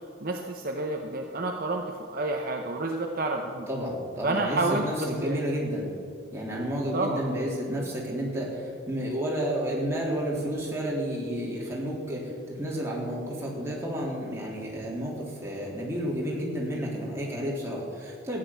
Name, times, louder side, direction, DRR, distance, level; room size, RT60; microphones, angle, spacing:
voice 1, 0.2-3.7 4.2-5.4 6.9-7.2, right 2 dB, 45° right, 2 dB, 1.0 m, -29 dB
voice 2, 3.7-5.9 6.3-18.4, equal, 15° right, -4 dB, 3.3 m, -31 dB
14.0 x 9.5 x 7.1 m, 2.3 s
head